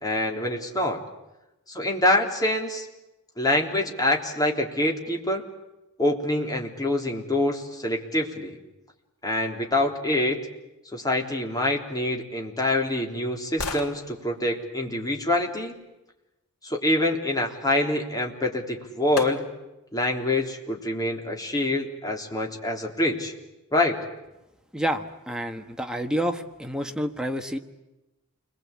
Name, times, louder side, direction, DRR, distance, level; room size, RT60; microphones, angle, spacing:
voice 1, 0.0-1.0 1.7-2.9 3.4-5.4 6.0-8.6 9.2-10.4 10.9-15.7 16.6-19.4 19.9-23.3 23.7-24.0, left 1 dB, 15° left, 1 dB, 3.6 m, -25 dB
sound 1, 12.1-16.2 18.3-18.4 19.2-19.8 20.3-20.4, left 3 dB, 85° left, 3.2 m, -38 dB
voice 2, 24.7-27.6, equal, 5° right, 5 dB, 1.4 m, -29 dB
29.5 x 22.0 x 8.7 m, 1.0 s
head